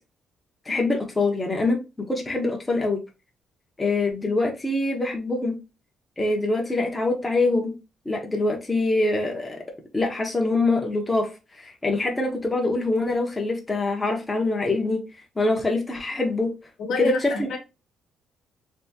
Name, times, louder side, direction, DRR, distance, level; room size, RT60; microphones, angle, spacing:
voice 1, 0.7-3.0 3.8-5.6 6.2-7.8 8.1-9.6 9.9-11.3 11.6-15.0 15.4-16.5 17.0-17.3, left 2 dB, 15° left, 0.8 m, -24 dB
voice 2, 16.8-17.6, left 4 dB, 70° left, 1.0 m, -28 dB
3.5 x 2.7 x 2.7 m
cardioid pair, 140°, 0 cm